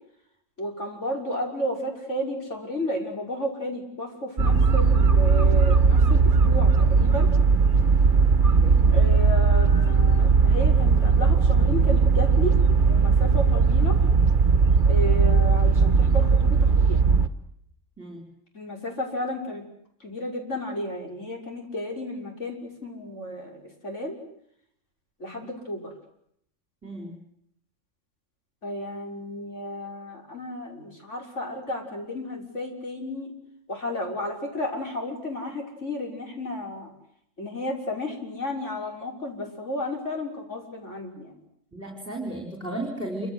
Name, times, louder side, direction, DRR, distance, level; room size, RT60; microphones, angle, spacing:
voice 1, 0.6-7.3 8.9-12.6 12.9-14.0 14.8-17.0 18.5-19.6 20.0-24.2 25.2-25.9 28.6-33.3 33.7-36.9 37.4-41.3, left 1 dB, 65° left, 1 dB, 6.4 m, -32 dB
sound 1, 4.4-17.3, right 5 dB, 40° right, 1.6 m, -18 dB
voice 2, 26.8-27.2 41.7-43.3, right 1 dB, 10° right, 2 dB, 5.0 m, -34 dB
28.0 x 26.0 x 8.0 m, 0.71 s
omnidirectional pair, 1.3 m